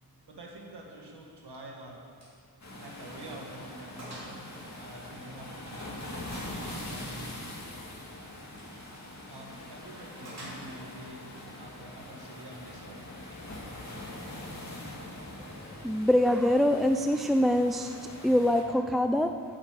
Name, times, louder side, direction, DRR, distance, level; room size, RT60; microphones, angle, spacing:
voice 1, 0.3-2.0 2.8-4.4 4.8-6.0 6.5-7.3 9.3-13.0, right 1 dB, 85° right, -1 dB, 2.0 m, -47 dB
Gunshot gunfire, 2.2-2.4 2.7-2.9 3.3-3.4 4.0-4.4 4.7-5.6 6.3-6.8 8.5-8.8 10.2-11.0, right 1 dB, 40° right, 3.1 m, -47 dB
sound 1, 2.6-18.6, left 1 dB, 45° left, 2.3 m, -43 dB
voice 2, 15.8-19.4, left 1 dB, ahead, 6 dB, 0.4 m, -24 dB
9.6 x 8.8 x 7.6 m, 2.2 s
wide cardioid pair, 100°, 40 cm